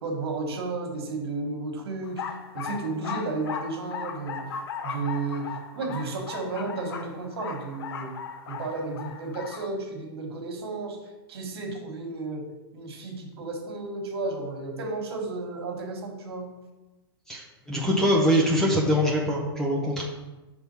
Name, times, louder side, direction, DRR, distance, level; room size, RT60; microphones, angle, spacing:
voice 1, 0.0-4.5 4.8-8.2 8.5-11.0 11.3-16.5, right 3 dB, 75° right, 2 dB, 1.5 m, -33 dB
sound 1, 2.0-9.7, left 6 dB, 70° left, 0.7 m, -37 dB
voice 2, 17.3-20.0, equal, 5° left, -2 dB, 0.5 m, -23 dB
6.1 x 3.5 x 5.4 m, 1.1 s
supercardioid pair, 175°, 13 cm